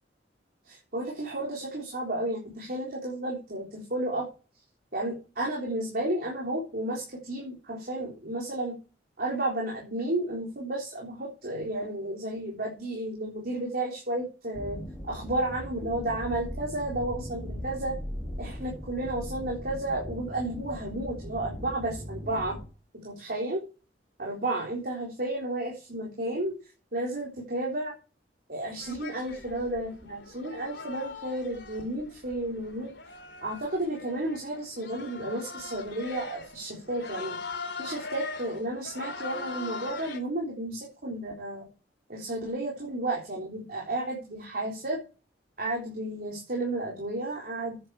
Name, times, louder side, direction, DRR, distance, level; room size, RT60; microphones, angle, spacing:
voice 1, 0.7-4.3 4.9-8.8 9.2-14.8 15.1-17.9 18.4-22.6 22.9-23.6 24.2-26.5 26.9-27.9 28.5-32.9 33.4-37.4 37.8-41.7 42.1-45.0 45.6-47.9, right 1 dB, 55° right, -2 dB, 3.8 m, -32 dB
sound 1, 14.5-22.7, equal, 10° left, 3.7 m, -39 dB
sound 2, 28.8-40.2, left 3 dB, 80° left, 2.9 m, -41 dB
9.9 x 8.0 x 6.0 m, 0.33 s
head